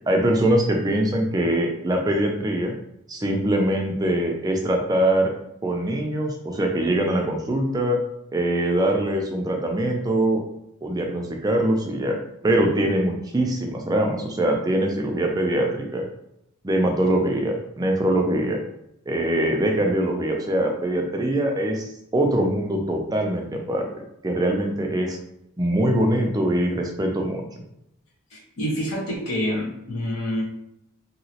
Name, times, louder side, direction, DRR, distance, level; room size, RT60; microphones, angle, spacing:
voice 1, 0.1-2.7 3.1-5.3 5.6-8.0 8.3-10.4 10.8-12.2 12.4-16.1 16.6-18.6 19.1-23.9 24.2-25.2 25.6-27.4, right 1 dB, 15° right, 2 dB, 0.3 m, -23 dB
voice 2, 28.3-30.4, equal, 70° left, -5 dB, 1.2 m, -27 dB
2.9 x 2.8 x 2.8 m, 0.80 s
head